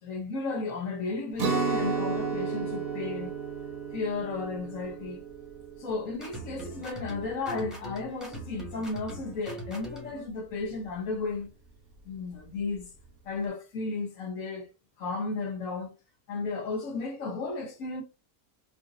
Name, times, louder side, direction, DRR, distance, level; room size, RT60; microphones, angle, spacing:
voice 1, 0.0-3.3 3.9-5.3 5.8-11.5 12.0-12.9 13.2-14.7 15.0-15.9 16.3-18.0, left 3 dB, 65° left, 1.3 m, -34 dB
Guitar, 1.4-7.2, right 5 dB, 55° right, 1.3 m, -33 dB
sound 1, 6.2-10.2, right 1 dB, ahead, 1.1 m, -42 dB
5.0 x 2.6 x 2.5 m
omnidirectional pair, 1.6 m